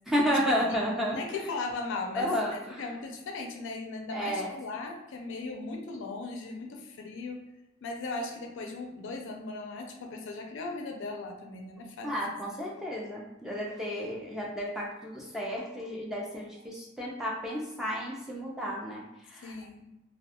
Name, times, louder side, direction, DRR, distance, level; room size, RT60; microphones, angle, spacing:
voice 1, 0.1-1.4 2.2-2.8 4.1-4.5 12.0-19.5, equal, ahead, -4 dB, 0.4 m, -32 dB
voice 2, 1.1-7.4 7.8-12.1 12.5-12.6 19.4-19.9, left 3 dB, 60° left, 2 dB, 0.4 m, -38 dB
2.3 x 2.2 x 2.8 m, 0.92 s
head